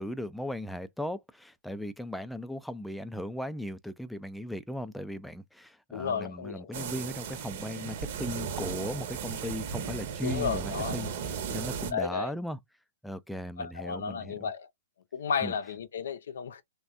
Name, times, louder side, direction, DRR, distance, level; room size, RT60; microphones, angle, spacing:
voice 1, 0.0-12.6 13.0-14.5 15.4-15.5, equal, ahead, 0.4 m, -37 dB
voice 2, 5.9-6.9 10.2-11.0 11.9-12.3 13.6-14.7 15.1-16.6, left 6 dB, 70° left, 0.6 m, -33 dB
sound 1, 6.7-11.9, right 6 dB, 55° right, 0.8 m, -36 dB
3.2 x 2.1 x 2.5 m
hypercardioid pair, 120°, 0 cm